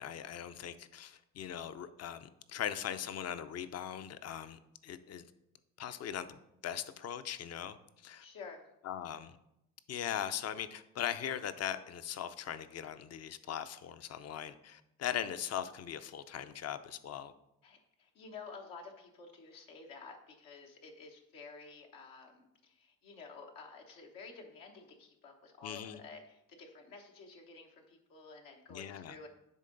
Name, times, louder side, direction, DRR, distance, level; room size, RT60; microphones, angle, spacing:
voice 1, 0.0-5.2 5.8-7.8 8.0-8.3 8.8-9.4 9.9-17.3 25.6-26.0 28.7-29.2, left 9 dB, 50° left, 12 dB, 0.6 m, -40 dB
voice 2, 8.2-8.7 17.6-29.3, left 4 dB, 80° left, 1 dB, 1.2 m, -51 dB
10.0 x 3.8 x 3.9 m, 0.84 s
supercardioid pair, 65°, 33 cm